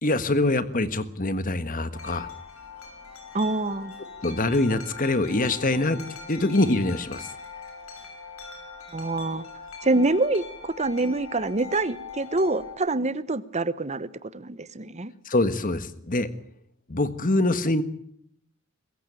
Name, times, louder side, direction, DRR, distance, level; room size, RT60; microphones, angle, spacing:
voice 1, 0.0-2.3 4.2-6.0 6.3-7.3 15.2-16.3 16.9-17.8, left 2 dB, 40° left, 12 dB, 1.6 m, -24 dB
Wind chime, 1.9-12.8, left 5 dB, 75° left, 6.2 m, -42 dB
voice 2, 3.3-3.9 8.9-9.4 9.8-15.1, right 2 dB, 30° right, 16 dB, 0.9 m, -26 dB
23.0 x 15.0 x 9.0 m, 0.69 s
head